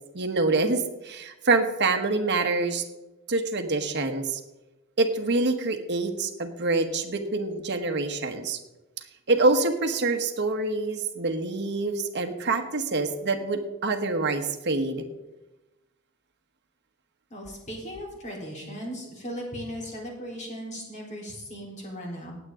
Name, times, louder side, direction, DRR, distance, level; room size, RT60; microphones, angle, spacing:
voice 1, 0.1-2.8 3.3-4.4 5.0-8.6 9.3-15.0, right 3 dB, 55° right, 6 dB, 1.2 m, -26 dB
voice 2, 17.3-22.3, equal, 35° left, -2 dB, 3.8 m, -37 dB
18.5 x 8.2 x 3.7 m, 1.0 s
head